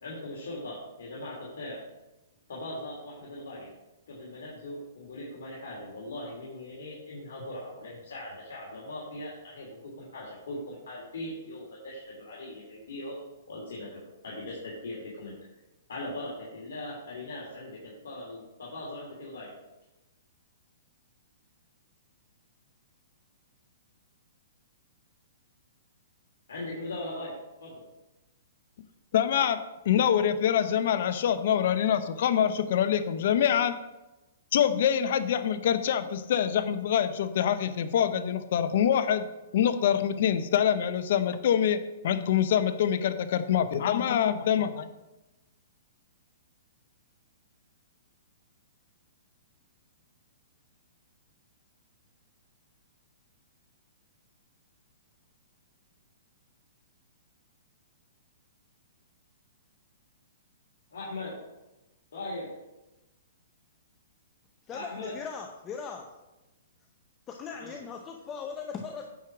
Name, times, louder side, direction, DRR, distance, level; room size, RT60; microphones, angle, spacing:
voice 1, 0.0-1.8 2.5-3.7 4.1-13.2 13.5-15.3 15.9-19.5 26.5-27.3 27.6-27.8 60.9-61.3 62.1-62.5 64.7-65.1 67.6-67.8, left 1 dB, 75° left, -5 dB, 2.8 m, -40 dB
voice 2, 29.1-29.6 29.9-33.8 34.5-39.2 39.5-41.8 42.0-44.9, left 9 dB, 60° left, 11 dB, 0.7 m, -25 dB
voice 3, 64.7-66.1 67.3-69.0, left 6 dB, 20° left, 3 dB, 0.7 m, -39 dB
9.3 x 4.6 x 6.0 m, 1.0 s
hypercardioid pair, 145°, 0 cm